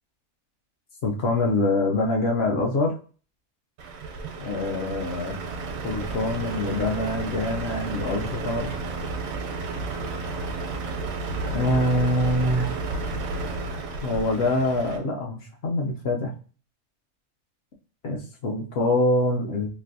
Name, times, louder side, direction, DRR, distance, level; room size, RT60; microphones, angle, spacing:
voice 1, 1.0-3.0 4.4-5.4 5.8-8.7 11.5-12.7 14.0-16.3 18.0-19.7, left 2 dB, 60° left, 1 dB, 0.7 m, -25 dB
Truck, 3.8-15.0, right 3 dB, 85° right, 1.1 m, -32 dB
3.3 x 2.5 x 2.6 m, 0.39 s
omnidirectional pair, 1.5 m